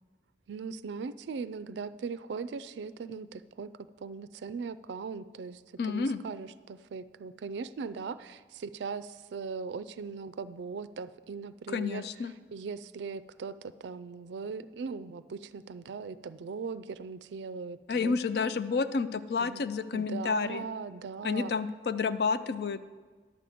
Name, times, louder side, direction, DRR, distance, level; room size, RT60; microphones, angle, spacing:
voice 1, 0.5-3.7 4.0-5.6 5.9-12.1 12.5-18.1 18.5-18.6 19.4-19.6 19.9-21.5, right 5 dB, 75° right, 15 dB, 0.4 m, -39 dB
voice 2, 5.8-6.2 11.7-12.3 17.9-20.7 21.2-22.8, left 4 dB, 60° left, 13 dB, 0.4 m, -30 dB
11.0 x 7.6 x 5.0 m, 1.5 s
head